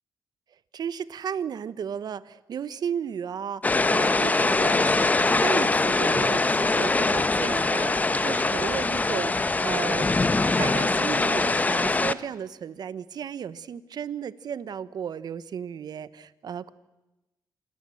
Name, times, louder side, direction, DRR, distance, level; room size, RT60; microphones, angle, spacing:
voice 1, 0.7-10.1 10.6-16.7, right 8 dB, 60° right, 16 dB, 1.0 m, -34 dB
sound 1, 3.6-12.1, left 3 dB, 20° left, 0.9 m, -23 dB
Drum, 6.2-8.9, right 1 dB, ahead, 1.9 m, -45 dB
27.0 x 21.5 x 7.7 m, 1.0 s
cardioid pair, 110°, 8 cm